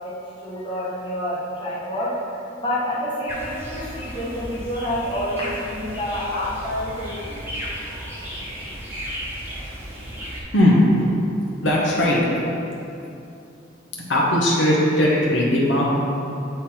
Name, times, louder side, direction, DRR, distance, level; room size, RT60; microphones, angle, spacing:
voice 1, 0.4-2.2 2.6-7.3, left 1 dB, 25° left, -8 dB, 1.2 m, -28 dB
sound 1, 3.3-10.4, equal, 10° right, 1.0 m, -34 dB
voice 2, 10.5-11.1 11.6-12.2 13.9-15.8, left 1 dB, 70° left, -4 dB, 1.1 m, -18 dB
8.2 x 3.9 x 4.3 m, 2.7 s
head